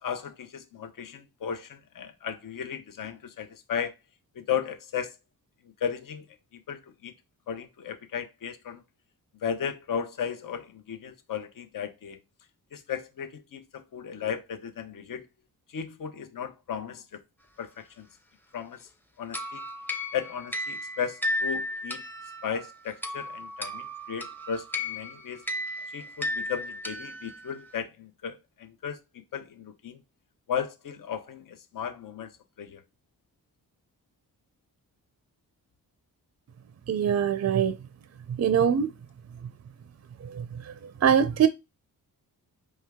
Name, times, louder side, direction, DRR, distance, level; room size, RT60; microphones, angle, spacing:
voice 1, 0.0-3.9 4.3-5.2 5.8-6.2 6.5-7.1 7.5-8.8 9.4-12.2 12.7-15.3 15.7-17.2 17.6-18.1 18.5-18.9 19.2-19.6 20.1-22.0 22.4-25.4 25.9-29.0 29.3-30.0 30.5-32.3 32.6-32.8, left 7 dB, 60° left, 0.9 m, -35 dB
sound 1, 19.3-27.7, left 1 dB, 5° left, 0.6 m, -34 dB
voice 2, 36.9-37.7 38.4-38.9 40.3-40.4 41.0-41.5, right 8 dB, 45° right, 0.5 m, -22 dB
4.5 x 3.3 x 3.6 m
wide cardioid pair, 110°, 37 cm